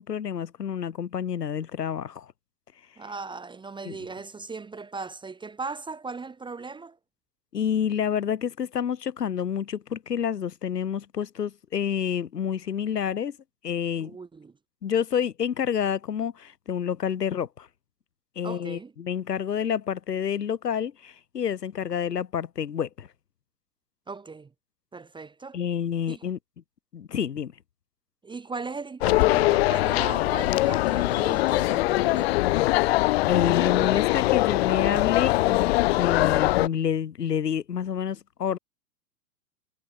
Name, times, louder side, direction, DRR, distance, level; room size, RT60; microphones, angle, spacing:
voice 1, 0.0-2.3 3.8-4.0 7.5-13.4 13.6-14.1 14.8-17.7 18.4-23.1 25.5-26.4 26.9-27.5 33.3-38.6, left 8 dB, 90° left, 1.3 m, -28 dB
voice 2, 3.0-7.0 14.0-14.6 18.4-18.9 24.1-24.5 24.9-25.6 26.1-26.2 28.2-32.5, right 4 dB, 10° right, 1.3 m, -38 dB
sound 1, 29.0-36.7, left 19 dB, 45° left, 0.5 m, -22 dB
hypercardioid pair, 110°, 46 cm